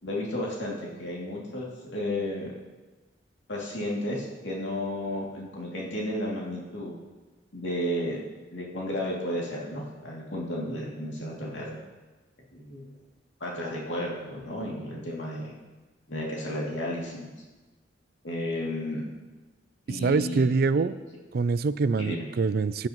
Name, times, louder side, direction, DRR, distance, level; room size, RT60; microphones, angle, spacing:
voice 1, 0.0-2.5 3.5-7.0 7.5-8.2 8.5-11.8 12.5-12.9 13.4-15.5 16.1-17.3 18.2-19.0 19.9-20.5 22.0-22.2, left 1 dB, 80° left, -4 dB, 2.6 m, -33 dB
voice 2, 20.0-21.0 21.3-22.9, right 4 dB, 55° right, 15 dB, 0.4 m, -24 dB
15.5 x 9.9 x 3.1 m, 1.2 s
head